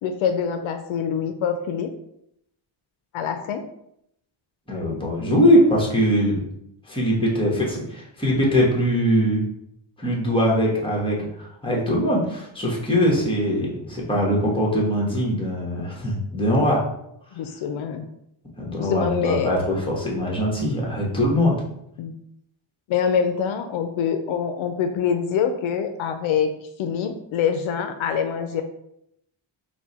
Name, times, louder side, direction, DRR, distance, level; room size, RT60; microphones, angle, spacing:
voice 1, 0.0-1.9 3.1-3.6 17.3-18.1 18.8-19.5 22.0-22.1 22.9-26.5 26.8-28.6, left 7 dB, 75° left, 7 dB, 0.5 m, -25 dB
voice 2, 4.7-6.4 6.8-9.4 10.0-16.8 18.6-21.6, equal, 10° left, -3 dB, 1.3 m, -21 dB
4.5 x 2.3 x 4.1 m, 0.77 s
cardioid pair, 110°, 48 cm